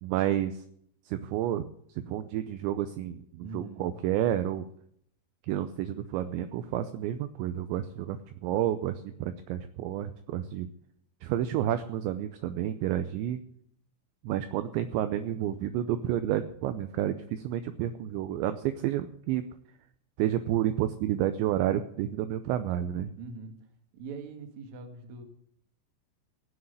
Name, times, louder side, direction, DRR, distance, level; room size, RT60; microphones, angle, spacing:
voice 1, 0.0-0.6 1.1-4.7 5.5-10.7 11.2-13.4 14.2-19.5 20.2-23.1, right 11 dB, 80° right, 10 dB, 2.7 m, -30 dB
voice 2, 3.4-3.9 23.2-25.2, right 3 dB, 50° right, 4 dB, 2.4 m, -43 dB
17.0 x 6.4 x 9.4 m, 0.68 s
omnidirectional pair, 5.7 m